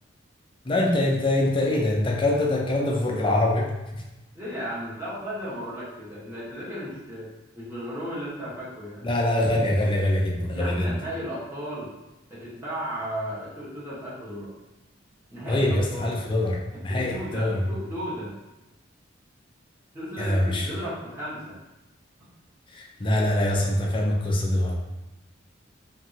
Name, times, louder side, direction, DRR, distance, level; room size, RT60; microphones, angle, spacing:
voice 1, 0.6-4.0 9.0-11.0 15.5-16.6 16.8-17.7 20.2-20.7 22.7-24.7, left 1 dB, 25° left, -1 dB, 0.4 m, -24 dB
voice 2, 4.3-7.3 7.6-9.0 10.5-11.9 12.3-14.5 15.3-16.2 16.9-18.3 19.9-21.6, equal, 10° right, -11 dB, 1.1 m, -35 dB
3.0 x 2.6 x 2.7 m, 1.0 s
head